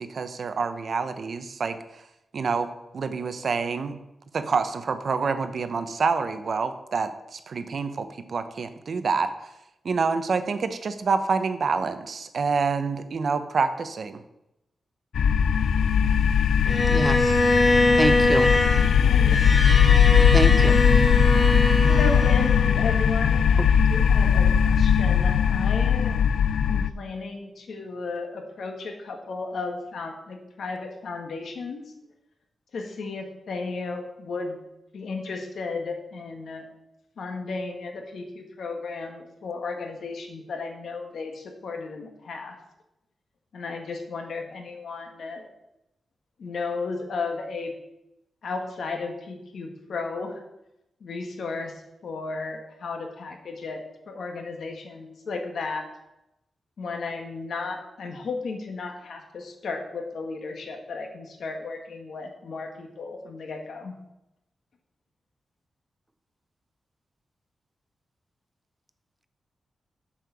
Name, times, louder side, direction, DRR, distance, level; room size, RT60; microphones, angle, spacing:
voice 1, 0.0-1.8 2.3-4.0 4.3-9.3 9.8-14.2, right 5 dB, 55° right, 10 dB, 0.8 m, -27 dB
sound 1, 15.1-26.9, left 7 dB, 90° left, 0.4 m, -19 dB
Bowed string instrument, 16.7-22.9, left 1 dB, 20° left, 1.5 m, -23 dB
voice 2, 16.9-17.5 17.9-18.5 20.3-20.8 23.6-23.7, right 1 dB, 15° right, 11 dB, 0.5 m, -26 dB
voice 3, 19.0-19.4 21.8-26.2 26.7-31.9 32.7-34.6 34.9-36.7 37.2-42.6 43.5-45.5 46.4-47.7 48.4-50.4 51.0-55.9 56.8-64.0, left 4 dB, 75° left, 4 dB, 1.7 m, -34 dB
7.3 x 6.6 x 7.0 m, 0.89 s
wide cardioid pair, 125°, 0 cm